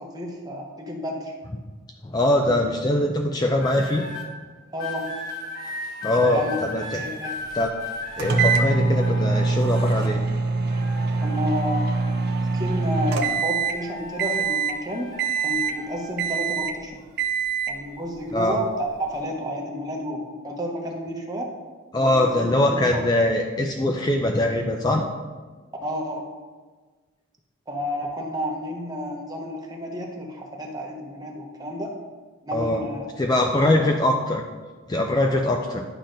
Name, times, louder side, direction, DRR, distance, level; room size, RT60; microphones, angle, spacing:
voice 1, 0.0-1.3 4.7-5.1 6.2-6.6 7.0-7.3 11.2-11.9 12.5-15.1 15.4-17.0 17.7-21.5 22.0-23.0 25.8-26.3 27.7-31.9 32.4-33.1 33.6-33.9, equal, 20° right, 0 dB, 0.9 m, -31 dB
voice 2, 2.0-4.1 6.0-7.0 7.5-7.7 8.2-10.2 18.3-18.6 21.9-25.0 32.5-32.8 33.2-34.4 34.9-35.8, left 1 dB, 20° left, 2 dB, 0.4 m, -22 dB
sound 1, 3.6-4.3 4.8-10.3 10.7-13.3 13.6-16.2 16.9-17.2, left 2 dB, 45° left, 1.3 m, -37 dB
sound 2, 8.2-13.8 14.2-14.8 15.2-15.8 16.2-16.8 17.2-17.8, right 4 dB, 50° right, 0.6 m, -24 dB
10.5 x 5.8 x 2.6 m, 1.4 s
head